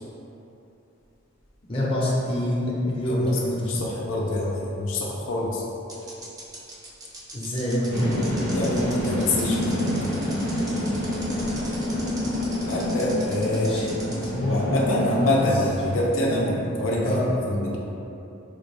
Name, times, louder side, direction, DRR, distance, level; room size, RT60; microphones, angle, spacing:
sound 1, 1.4-3.0 3.2-3.3 5.1-5.2 5.9-14.3, right 2 dB, 20° right, 0.5 m, -41 dB
voice 1, 1.7-3.8 7.3-8.2 13.5-15.5 16.2-16.6 17.0-17.2, left 1 dB, 30° left, -7 dB, 0.7 m, -26 dB
voice 2, 3.0-5.6 8.5-9.6 12.7-13.7 14.4-17.8, left 1 dB, 80° left, -3 dB, 0.5 m, -26 dB
sound 2, 7.9-16.0, left 1 dB, 55° right, 0.7 m, -28 dB
4.4 x 2.5 x 3.3 m, 2.9 s
head